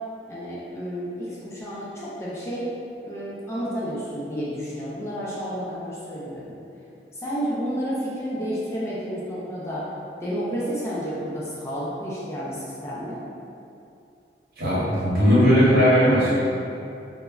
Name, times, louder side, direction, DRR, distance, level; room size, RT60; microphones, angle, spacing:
voice 1, 0.3-2.7 3.1-6.6 7.1-9.8 10.2-13.2, equal, 15° left, -8 dB, 0.4 m, -31 dB
voice 2, 14.6-16.3, equal, 55° right, -10 dB, 0.9 m, -18 dB
3.2 x 2.0 x 2.3 m, 2.7 s
head